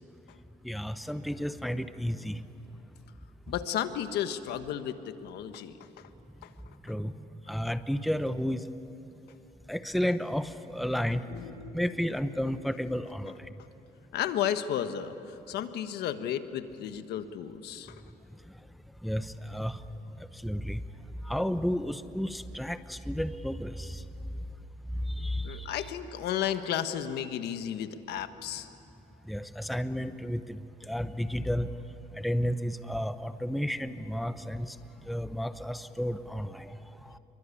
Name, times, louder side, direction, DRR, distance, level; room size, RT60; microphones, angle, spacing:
voice 1, 0.6-2.4 6.8-7.1 7.5-8.7 9.7-11.2 11.7-13.3 19.0-19.8 20.4-20.8 21.2-24.0 25.2-25.9 29.3-31.7 32.2-34.7 35.1-36.7 37.0-37.2, equal, ahead, 11 dB, 0.8 m, -32 dB
voice 2, 3.5-6.1 6.4-6.5 11.3-11.9 12.8-12.9 14.1-17.9 25.4-28.7, left 10 dB, 75° left, 9 dB, 1.4 m, -33 dB
28.0 x 23.5 x 8.6 m, 2.9 s
cardioid pair, 110°, 17 cm